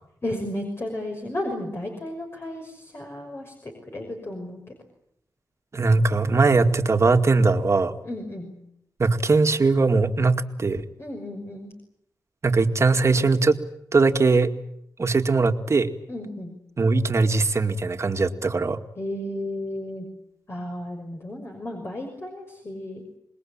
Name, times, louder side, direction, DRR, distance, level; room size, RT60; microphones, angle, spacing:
voice 1, 0.2-4.6 8.0-8.5 11.0-11.7 16.1-16.6 19.0-20.1 20.5-23.0, left 1 dB, 35° left, 2 dB, 6.0 m, -33 dB
voice 2, 5.7-8.0 9.0-10.8 12.4-13.6 13.9-14.5 15.0-15.9 16.8-18.8, right 3 dB, 45° right, 7 dB, 2.2 m, -20 dB
27.0 x 21.0 x 8.9 m, 0.77 s
cardioid pair, 80°, 7 cm